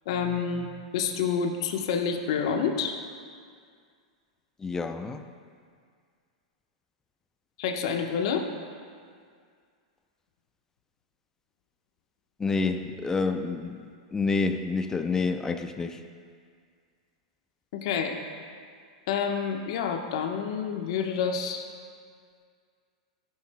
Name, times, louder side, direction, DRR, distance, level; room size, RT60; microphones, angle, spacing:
voice 1, 0.1-3.0 7.6-8.5 17.7-18.2 19.1-21.7, left 6 dB, 60° left, 4 dB, 1.3 m, -28 dB
voice 2, 4.6-5.3 12.4-16.0, left 4 dB, 15° left, 8 dB, 0.6 m, -28 dB
19.0 x 11.5 x 2.3 m, 2.1 s
hypercardioid pair, 100°, 3 cm